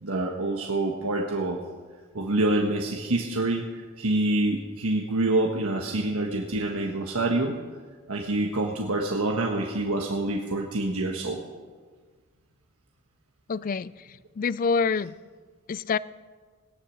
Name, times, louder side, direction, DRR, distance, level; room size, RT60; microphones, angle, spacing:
voice 1, 0.0-1.6 2.1-7.5 8.1-11.4, right 2 dB, 85° right, 0 dB, 1.4 m, -26 dB
voice 2, 13.5-13.9 14.4-15.1 15.7-16.0, left 5 dB, 40° left, 18 dB, 0.3 m, -26 dB
18.0 x 10.5 x 6.4 m, 1.5 s
head